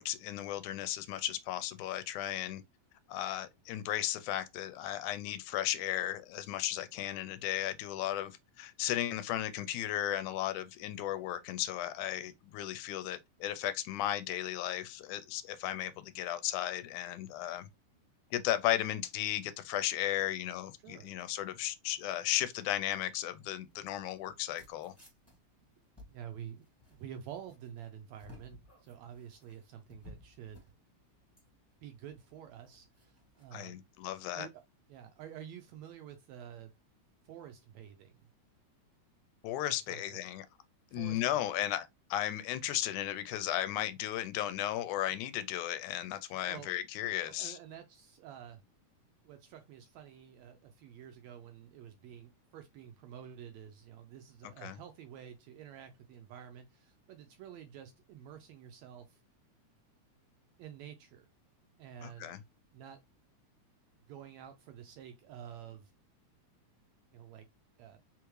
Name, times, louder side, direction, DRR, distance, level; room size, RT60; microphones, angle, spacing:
voice 1, 0.0-2.6 3.1-17.7 18.3-24.9 33.5-34.5 39.4-40.5 40.9-47.6 54.6-54.8 62.0-62.4, left 13 dB, 80° left, 2.0 m, -35 dB
sound 1, 23.6-33.5, left 1 dB, 5° left, 1.3 m, -58 dB
voice 2, 26.1-30.7 31.8-33.8 34.3-34.6 34.9-36.7 37.2-38.3 39.7-40.2 40.9-41.4 46.2-46.7 47.3-48.6 49.2-59.2 60.6-61.3 61.8-62.3 62.7-63.0 64.1-65.9 67.1-67.5 67.8-68.0, right 9 dB, 80° right, 1.6 m, -49 dB
4.8 x 3.5 x 3.1 m
omnidirectional pair, 3.6 m